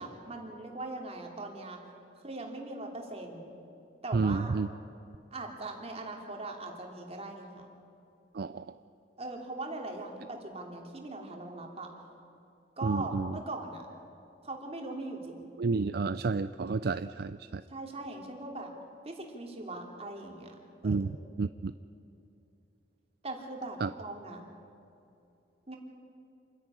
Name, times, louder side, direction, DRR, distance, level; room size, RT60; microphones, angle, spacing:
voice 1, 0.0-1.8 2.2-3.5 4.0-4.6 5.3-7.7 9.2-11.9 12.8-13.8 14.4-15.5 17.7-18.7 19.0-20.5 20.8-21.1 23.2-24.4 25.7-25.8, right 2 dB, 35° right, 2 dB, 2.9 m, -40 dB
voice 2, 4.1-4.7 8.4-8.6 12.8-13.3 15.6-17.6 20.8-21.7 23.8-23.9, right 4 dB, 60° right, 12 dB, 0.4 m, -30 dB
27.5 x 10.5 x 9.8 m, 2.7 s
head